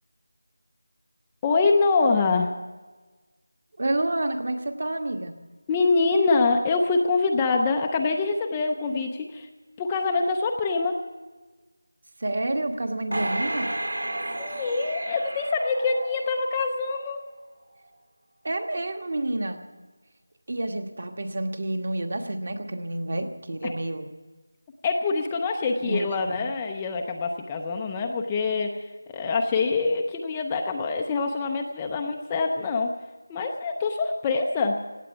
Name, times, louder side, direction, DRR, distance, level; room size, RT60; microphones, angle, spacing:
voice 1, 1.4-2.6 5.7-9.5 9.8-11.0 14.3-17.2 23.6-23.7 24.8-32.9 33.3-34.8, left 4 dB, 10° left, 2 dB, 0.4 m, -25 dB
voice 2, 3.8-5.3 12.2-13.7 18.4-19.6 20.5-24.1 25.8-26.5, right 1 dB, 40° right, 7 dB, 1.3 m, -29 dB
sound 1, 13.1-16.6 17.0-17.1, right 1 dB, 80° right, 2.7 m, -32 dB
17.0 x 8.3 x 9.9 m, 1.3 s
figure-of-eight pair, 180°, 0 cm